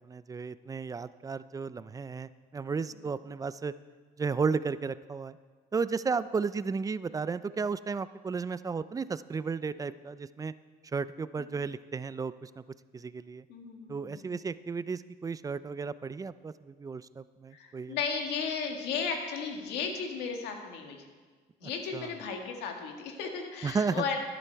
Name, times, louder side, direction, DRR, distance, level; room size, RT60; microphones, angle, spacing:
voice 1, 0.0-3.7 4.2-5.4 5.7-10.5 10.9-12.6 12.9-13.4 13.9-18.0 21.9-22.1 23.6-24.0, right 5 dB, 20° right, 15 dB, 0.4 m, -33 dB
voice 2, 13.5-14.4 17.5-21.0 21.6-24.2, left 5 dB, 85° left, 3 dB, 1.8 m, -35 dB
12.5 x 11.0 x 4.6 m, 1.4 s
cardioid pair, 110°, 17 cm